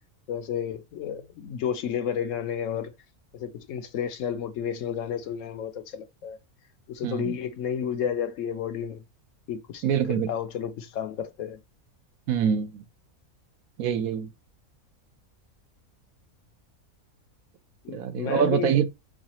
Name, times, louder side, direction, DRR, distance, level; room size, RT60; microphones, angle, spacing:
voice 1, 0.3-2.9 3.3-6.4 6.9-9.0 9.5-11.6 17.8-18.8, left 8 dB, 70° left, 0.9 m, -31 dB
voice 2, 7.0-7.4 9.8-10.3 12.3-12.8 13.8-14.3 17.9-18.9, right 8 dB, 80° right, 1.1 m, -25 dB
4.8 x 2.3 x 2.8 m
omnidirectional pair, 1.5 m